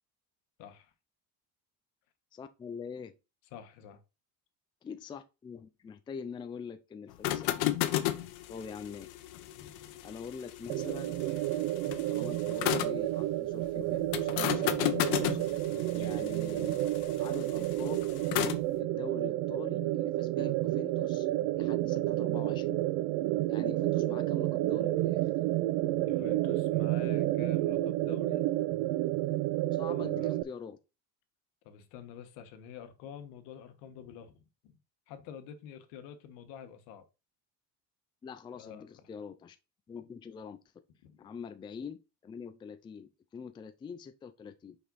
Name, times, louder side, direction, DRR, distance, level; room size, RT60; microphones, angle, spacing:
voice 1, 0.6-0.9 3.5-4.0 8.0-8.3 9.4-10.0 15.7-16.2 16.5-16.6 26.0-28.4 29.9-30.4 31.6-34.8 35.1-37.0 38.5-38.9 41.0-41.1, left 8 dB, 75° left, 1.5 m, -48 dB
voice 2, 2.3-3.2 4.8-8.2 8.5-9.1 10.0-11.2 12.1-15.4 15.9-16.8 17.2-18.0 18.8-21.3 21.5-22.8 23.5-25.3 29.7-30.8 38.2-39.6 39.9-40.6 41.2-44.8, left 6 dB, 15° left, 0.4 m, -44 dB
sound 1, 7.1-13.0 14.1-18.6, left 14 dB, 90° left, 1.0 m, -34 dB
sound 2, 10.7-30.4, right 16 dB, 65° right, 0.5 m, -30 dB
5.7 x 5.4 x 4.0 m
cardioid pair, 150°, 34 cm